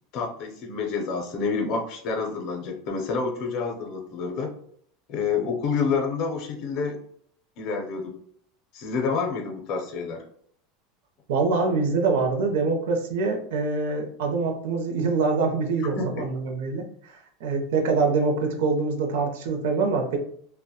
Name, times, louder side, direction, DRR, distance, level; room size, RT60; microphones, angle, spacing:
voice 1, 0.1-4.5 5.1-7.0 7.6-8.2 8.7-10.2 15.9-16.3, left 5 dB, 45° left, 1 dB, 0.5 m, -28 dB
voice 2, 11.3-20.2, right 4 dB, 80° right, 3 dB, 0.5 m, -25 dB
2.8 x 2.1 x 2.2 m, 0.62 s
supercardioid pair, 165°, 0 cm